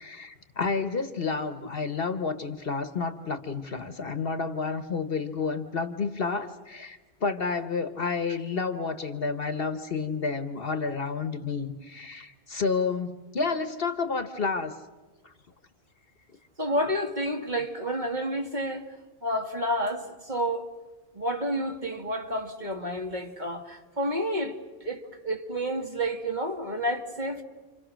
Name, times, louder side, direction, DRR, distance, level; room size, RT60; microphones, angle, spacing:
voice 1, 0.0-14.7 15.2-15.3, left 4 dB, 50° left, 1.3 m, -30 dB
voice 2, 16.6-18.8 19.2-20.7 21.1-27.4, equal, 35° right, 2.1 m, -30 dB
30.0 x 26.5 x 6.3 m
omnidirectional pair, 1.3 m